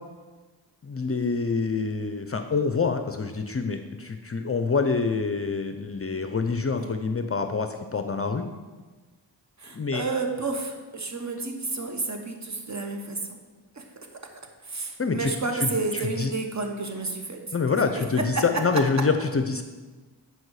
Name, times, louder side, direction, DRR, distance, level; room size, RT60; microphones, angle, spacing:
voice 1, 0.8-8.5 9.7-10.0 15.0-16.3 17.5-19.6, left 4 dB, 30° left, 7 dB, 0.6 m, -26 dB
voice 2, 9.6-13.4 13.8-13.9 14.7-17.4 17.7-18.0, right 3 dB, 40° right, 3 dB, 1.2 m, -31 dB
9.4 x 4.8 x 4.8 m, 1.3 s
cardioid pair, 60°, 45 cm